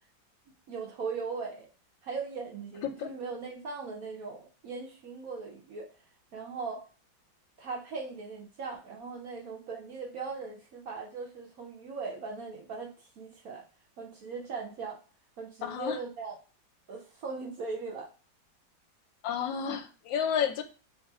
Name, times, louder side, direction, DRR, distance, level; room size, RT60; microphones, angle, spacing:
voice 1, 0.7-1.7 2.0-5.9 6.3-6.8 7.6-13.6 14.0-15.0 15.4-16.4 16.9-18.1, right 4 dB, 65° right, 0 dB, 0.9 m, -39 dB
voice 2, 15.6-16.0 19.2-20.6, left 8 dB, 85° left, 7 dB, 1.3 m, -31 dB
3.1 x 2.5 x 3.5 m, 0.35 s
omnidirectional pair, 2.1 m